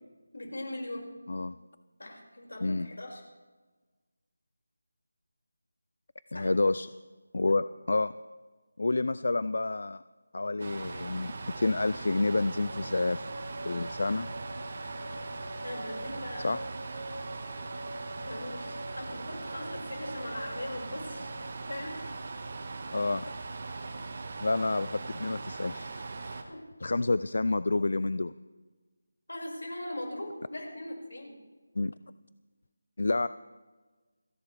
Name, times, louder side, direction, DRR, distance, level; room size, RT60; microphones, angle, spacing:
voice 1, 0.3-1.1 2.0-3.2 6.3-6.5 15.6-16.6 18.2-22.2 26.2-26.6 29.3-31.4, left 1 dB, 85° left, 0 dB, 5.8 m, -40 dB
voice 2, 6.3-6.9 7.3-8.1 8.8-10.0 10.3-13.3 13.6-14.3 16.4-16.6 22.9-23.3 24.4-26.1 26.8-28.3 31.8-31.9 33.0-33.3, left 2 dB, 60° left, 16 dB, 0.4 m, -29 dB
sound 1, 10.6-26.4, right 3 dB, 40° right, 1.5 m, -40 dB
sound 2, 12.6-21.6, equal, 75° right, 5.0 m, -45 dB
29.5 x 11.0 x 3.5 m, 1.3 s
figure-of-eight pair, 170°, 0 cm